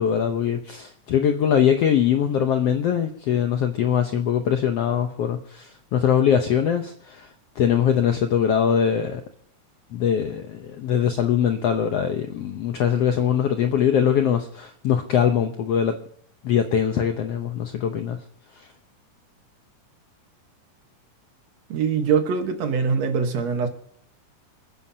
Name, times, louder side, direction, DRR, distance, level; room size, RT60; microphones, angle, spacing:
voice 1, 0.0-7.3 7.6-9.2 9.9-16.0 16.4-18.2, left 8 dB, 75° left, 6 dB, 1.4 m, -22 dB
voice 2, 21.7-23.7, right 6 dB, 60° right, 6 dB, 2.2 m, -23 dB
28.0 x 10.0 x 2.8 m, 0.64 s
omnidirectional pair, 3.8 m